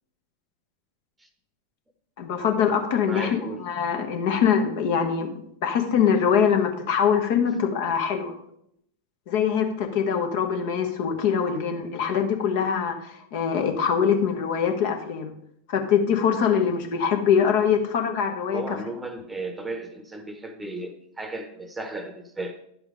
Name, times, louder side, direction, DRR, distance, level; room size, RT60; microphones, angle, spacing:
voice 1, 2.2-8.3 9.3-15.3 15.7-18.6, left 7 dB, 50° left, 4 dB, 1.2 m, -23 dB
voice 2, 3.1-3.6 18.5-22.6, right 2 dB, 10° right, 8 dB, 1.0 m, -35 dB
10.5 x 5.0 x 4.9 m, 0.74 s
figure-of-eight pair, 90°, 0 cm